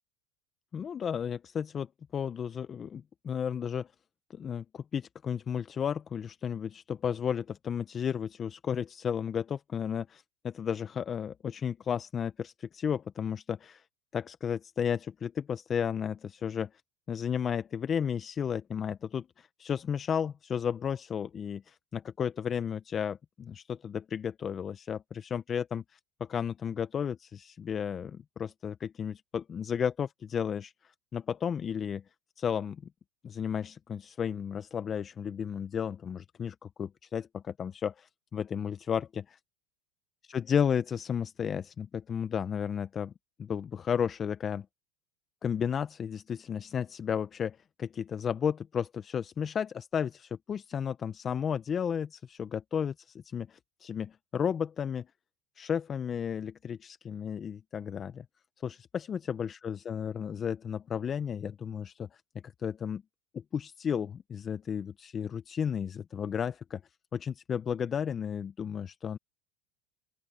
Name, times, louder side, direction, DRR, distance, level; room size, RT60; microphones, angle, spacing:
voice 1, 0.7-3.9 4.3-13.8 14.1-16.7 17.1-30.7 31.1-32.0 32.4-32.8 33.2-39.4 40.3-43.1 43.4-44.7 45.4-55.1 55.6-58.2 58.6-63.0 63.3-66.8 67.1-69.2, left 7 dB, 30° left, 0.8 m, -33 dB
open air
supercardioid pair, 110°, 0 cm